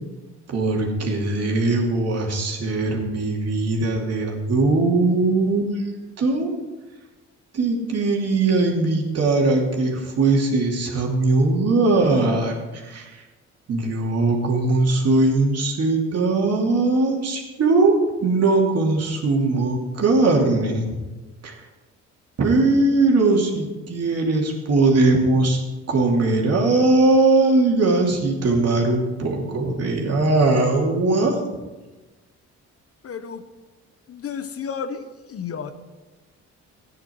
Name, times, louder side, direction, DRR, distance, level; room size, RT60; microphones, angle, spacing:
voice 1, 0.5-5.8 6.2-6.5 7.5-13.1 13.7-20.9 21.4-21.5 22.4-25.6 25.9-31.4, right 3 dB, 55° right, -1 dB, 2.8 m, -20 dB
voice 2, 33.0-33.5 34.1-35.7, left 6 dB, 50° left, 10 dB, 0.9 m, -32 dB
13.5 x 9.8 x 4.6 m, 1.2 s
cardioid pair, 90°, 30 cm